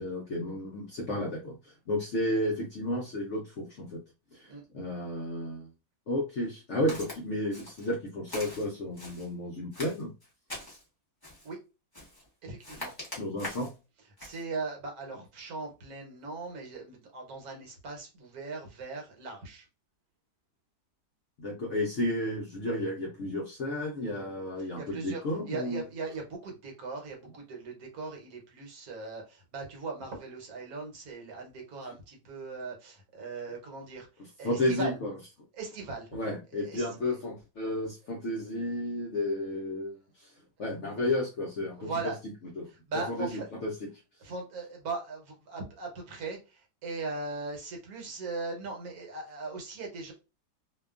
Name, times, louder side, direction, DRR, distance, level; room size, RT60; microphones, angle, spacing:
voice 1, 0.0-4.0 4.3-5.7 6.1-10.1 13.2-13.7 21.4-25.8 34.4-35.1 36.1-40.3 40.6-41.9 42.6-42.7 43.1-43.7, left 1 dB, 65° left, -2 dB, 0.7 m, -32 dB
Walk footsteps, 6.9-7.2 7.5-7.9 8.3-9.3 9.7-10.8 11.2-11.5 11.9-12.3 12.6-13.8 14.2-14.4, left 1 dB, 15° left, 0.8 m, -42 dB
voice 2, 12.4-12.9 14.2-19.7 24.6-35.0 35.5-36.2 36.5-37.2 41.8-42.2 42.7-43.5 44.2-50.1, right 3 dB, 65° right, 1 dB, 1.2 m, -39 dB
2.8 x 2.3 x 2.3 m, 0.29 s
omnidirectional pair, 1.8 m